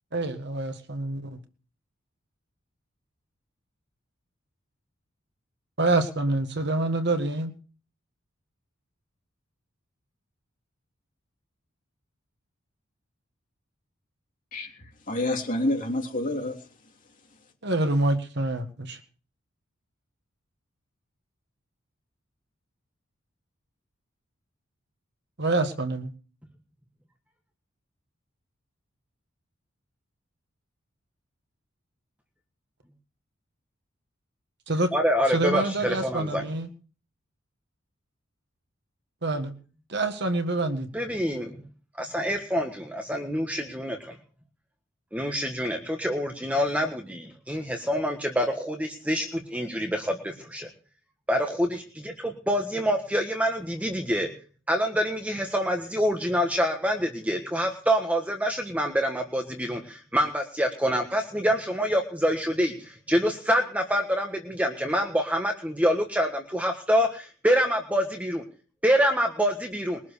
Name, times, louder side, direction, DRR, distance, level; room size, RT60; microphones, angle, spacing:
voice 1, 0.1-1.4 5.8-7.5 17.6-19.0 25.4-26.1 34.7-34.9 35.3-36.7 39.2-39.5 39.9-40.9, right 2 dB, 55° right, 8 dB, 1.8 m, -26 dB
voice 2, 14.5-16.6, left 1 dB, 40° left, 1 dB, 3.4 m, -28 dB
voice 3, 34.9-36.4 40.9-41.6 42.0-44.2 45.1-50.7 51.3-54.3 54.7-68.4 68.8-70.0, equal, 5° right, 4 dB, 1.4 m, -26 dB
21.5 x 7.3 x 6.8 m, 0.40 s
head